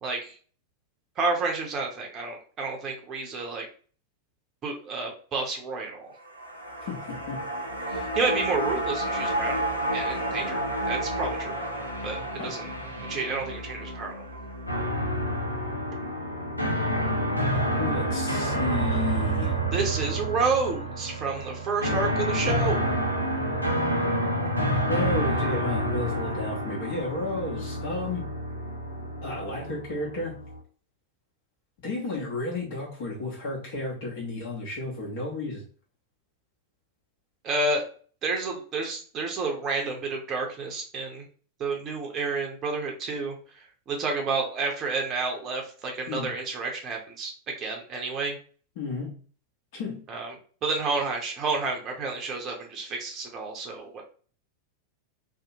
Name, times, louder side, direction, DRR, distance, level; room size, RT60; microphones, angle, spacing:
voice 1, 0.0-0.3 1.2-3.7 4.6-6.1 7.9-9.5 9.9-11.5 12.0-12.7 13.1-14.2 19.7-22.8 37.4-37.8 38.2-41.3 41.6-48.4 50.1-50.4 50.6-54.0, right 4 dB, 30° right, 1 dB, 0.6 m, -30 dB
sound 1, 6.2-16.6 16.9-17.0, right 1 dB, 85° right, 0.7 m, -32 dB
sound 2, 14.7-30.6, right 1 dB, 90° left, 0.5 m, -28 dB
voice 2, 17.8-19.6 24.9-28.2 29.2-30.3 31.8-35.6 46.1-46.3 48.8-49.1 49.7-50.0, left 2 dB, 50° left, -4 dB, 1.0 m, -32 dB
2.7 x 2.1 x 2.7 m, 0.42 s
figure-of-eight pair, 90°, 0 cm